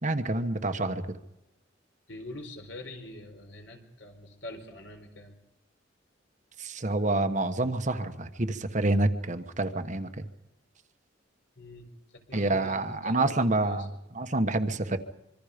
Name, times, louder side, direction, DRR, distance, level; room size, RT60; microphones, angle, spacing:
voice 1, 0.0-1.2 6.6-10.1 12.3-13.9 14.1-15.0, right 2 dB, 40° right, 8 dB, 1.3 m, -27 dB
voice 2, 2.1-5.4 11.6-14.0, left 1 dB, 65° left, 4 dB, 4.5 m, -44 dB
25.5 x 24.5 x 5.2 m, 0.92 s
head